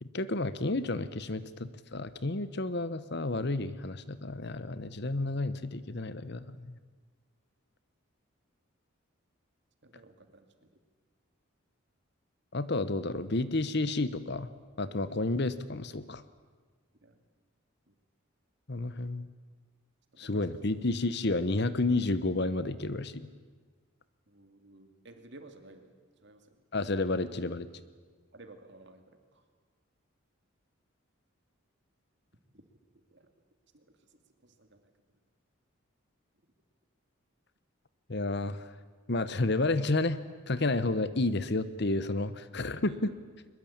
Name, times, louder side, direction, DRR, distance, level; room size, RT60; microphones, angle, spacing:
voice 1, 0.0-6.7 12.5-14.5 14.8-16.2 18.7-19.3 20.2-23.3 26.7-27.7 38.1-38.6 39.1-43.1, left 2 dB, 50° left, 14 dB, 1.0 m, -31 dB
voice 2, 9.8-10.7 17.0-17.2 17.9-18.0 20.1-20.4 24.3-26.0 26.2-26.6 28.3-29.4 32.5-32.6 33.1-33.3 33.7-34.9 42.9-43.2, right 2 dB, 55° right, 7 dB, 2.5 m, -54 dB
22.5 x 21.5 x 8.8 m, 1.4 s
head